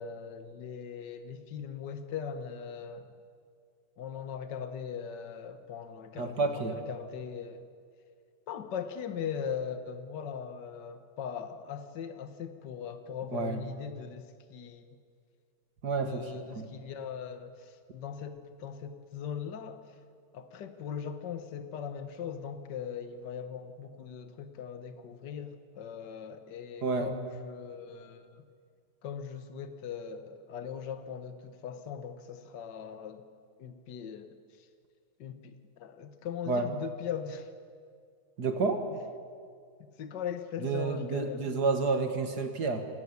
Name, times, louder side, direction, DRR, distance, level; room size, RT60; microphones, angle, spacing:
voice 1, 0.0-3.1 4.0-7.7 8.5-15.0 16.0-19.8 20.3-28.5 29.0-33.2 33.6-34.4 35.2-37.5 39.8-41.4, left 7 dB, 60° left, 9 dB, 1.8 m, -40 dB
voice 2, 6.2-6.8 13.3-13.6 15.8-16.7 26.8-27.1 36.5-36.7 38.4-38.8 40.6-42.8, right 4 dB, 55° right, 7 dB, 2.2 m, -30 dB
27.0 x 15.5 x 9.6 m, 2.1 s
omnidirectional pair, 2.2 m